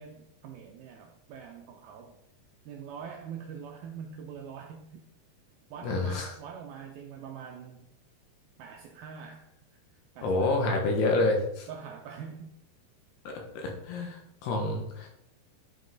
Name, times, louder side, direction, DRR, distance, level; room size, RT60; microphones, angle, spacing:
voice 1, 0.0-2.2 2.7-5.0 5.7-7.8 8.6-9.6 10.2-10.9 11.7-12.5 14.0-14.2, right 7 dB, 80° right, 2 dB, 2.2 m, -44 dB
voice 2, 5.8-6.3 10.2-11.7 13.3-15.1, left 2 dB, 75° left, 1 dB, 3.3 m, -28 dB
10.5 x 5.5 x 3.9 m, 0.77 s
omnidirectional pair, 5.0 m